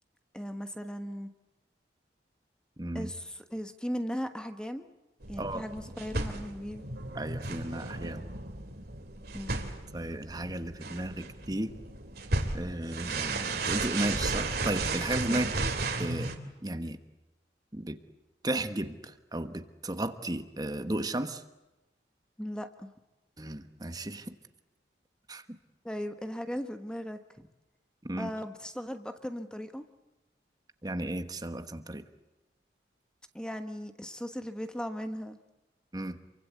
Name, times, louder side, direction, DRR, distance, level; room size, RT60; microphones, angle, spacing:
voice 1, 0.3-1.3 2.9-4.9 5.3-6.9 9.3-9.6 15.3-15.5 22.4-22.9 25.8-27.5 28.2-29.8 33.3-35.4, equal, 5° left, 8 dB, 1.2 m, -37 dB
voice 2, 2.8-3.1 5.4-5.6 7.1-8.3 9.9-11.8 12.5-16.3 16.6-17.0 17.7-18.0 18.4-21.4 23.4-24.4 25.3-25.4 28.0-28.3 30.8-32.0 35.9-36.2, right 1 dB, 20° right, 9 dB, 1.2 m, -34 dB
sound 1, 5.2-16.4, right 3 dB, 55° right, 3.3 m, -34 dB
28.0 x 24.0 x 8.4 m, 1.0 s
head